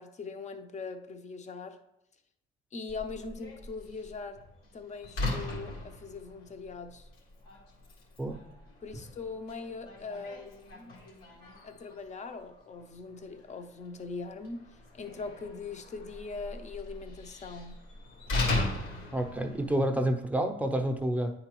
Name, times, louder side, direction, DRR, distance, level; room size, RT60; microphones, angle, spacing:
voice 1, 0.0-1.8 2.7-4.4 4.7-7.1 8.8-10.9 11.6-14.6 14.9-17.8, left 4 dB, 35° left, 7 dB, 0.7 m, -41 dB
Slam, 2.9-20.0, left 2 dB, 90° left, 2.0 m, -39 dB
voice 2, 19.1-21.3, right 1 dB, 5° right, 4 dB, 0.6 m, -29 dB
9.3 x 3.9 x 3.0 m, 0.81 s
cardioid pair, 105°, 21 cm